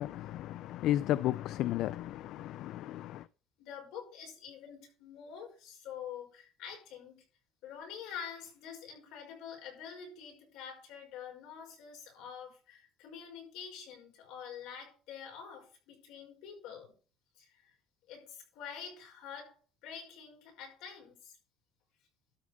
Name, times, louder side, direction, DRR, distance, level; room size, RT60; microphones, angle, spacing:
voice 1, 0.0-3.3, left 13 dB, 60° left, 0.4 m, -33 dB
voice 2, 3.6-7.2 7.6-16.9 17.4-17.7 18.1-21.4, left 7 dB, 80° left, 5.2 m, -47 dB
12.5 x 4.7 x 7.0 m
cardioid pair, 155°, 0 cm